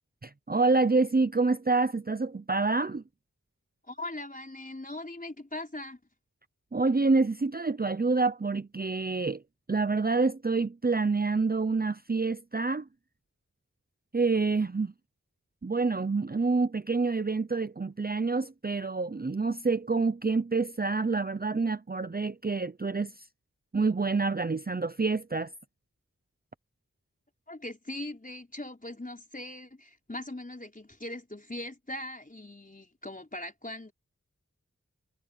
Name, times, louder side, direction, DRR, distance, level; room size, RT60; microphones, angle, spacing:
voice 1, 0.2-3.0 6.7-9.4 9.7-12.9 14.1-14.9 15.6-23.1 23.7-25.5, right 3 dB, 30° right, 0.7 m, -27 dB
voice 2, 3.9-6.0 27.5-33.9, left 1 dB, 25° left, 4.4 m, -40 dB
wide cardioid pair, 45°, 31 cm